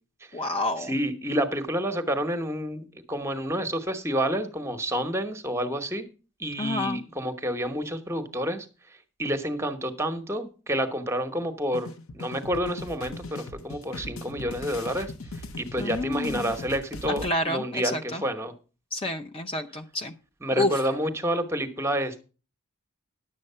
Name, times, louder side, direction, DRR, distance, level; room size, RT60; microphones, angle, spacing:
voice 1, 0.3-0.9 6.6-7.0 15.8-16.5 17.1-18.2 18.9-20.1 20.6-20.8, left 1 dB, 25° left, 5 dB, 0.6 m, -29 dB
voice 2, 0.9-6.1 6.4-8.7 9.2-15.1 15.6-18.5 20.4-22.2, equal, 10° right, 8 dB, 1.0 m, -29 dB
sound 1, 11.7-17.3, left 2 dB, 65° left, 0.9 m, -39 dB
11.0 x 7.7 x 5.5 m, 0.35 s
head